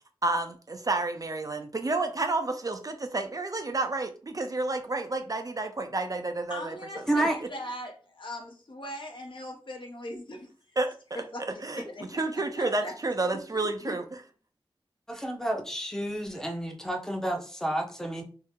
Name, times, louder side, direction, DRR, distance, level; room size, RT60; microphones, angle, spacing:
voice 1, 0.2-6.7 10.8-11.8 12.1-14.0, right 2 dB, 40° right, 6 dB, 0.4 m, -30 dB
voice 2, 6.5-10.5 11.1-11.5 11.8-12.9 13.5-14.0, left 1 dB, 60° left, 1 dB, 0.8 m, -40 dB
voice 3, 15.1-18.2, right 1 dB, 5° left, 3 dB, 0.7 m, -30 dB
2.8 x 2.0 x 3.5 m, 0.39 s
wide cardioid pair, 65°, 9 cm